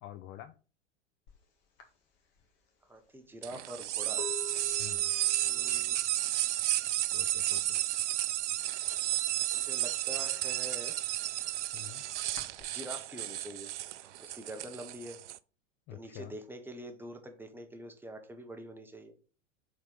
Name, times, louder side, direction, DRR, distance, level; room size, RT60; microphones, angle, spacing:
voice 1, 0.0-0.5 4.8-5.1 7.1-7.8 11.7-12.0 15.9-16.3, left 13 dB, 30° left, 9 dB, 0.4 m, -47 dB
sound 1, 1.3-1.4 1.8-7.5 7.7-8.2 8.5-9.7 10.0-12.6, left 5 dB, 55° left, 1.9 m, -48 dB
voice 2, 2.9-4.3 4.6-4.7 5.0-6.0 6.3-6.4 9.5-11.0 12.7-13.7 14.0-15.2 15.9-19.1, right 1 dB, 5° right, 5 dB, 1.0 m, -45 dB
sound 2, 3.4-15.4, right 14 dB, 70° right, 0.5 m, -32 dB
4.6 x 4.4 x 5.4 m, 0.37 s
figure-of-eight pair, 90°, 37 cm